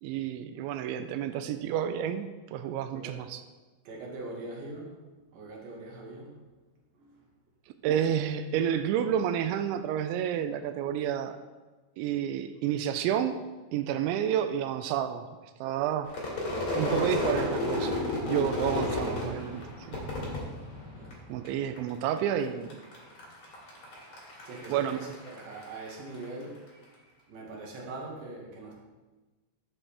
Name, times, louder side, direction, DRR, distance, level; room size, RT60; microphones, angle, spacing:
voice 1, 0.0-3.4 7.8-11.4 12.0-13.4 13.7-15.3 15.6-16.1 16.8-17.9 18.3-20.0 21.3-22.8 24.7-25.0, right 9 dB, 90° right, 9 dB, 2.9 m, -30 dB
voice 2, 3.8-5.0 5.3-6.4 7.0-7.1 16.6-17.7 20.9-21.2 24.4-26.6 27.3-28.8, right 2 dB, 60° right, -2 dB, 3.2 m, -42 dB
Crowd / Fireworks, 16.1-21.5 21.8-22.4 22.7-26.2, left 1 dB, 35° left, 2.6 m, -32 dB
12.0 x 7.5 x 3.4 m, 1.2 s
omnidirectional pair, 5.2 m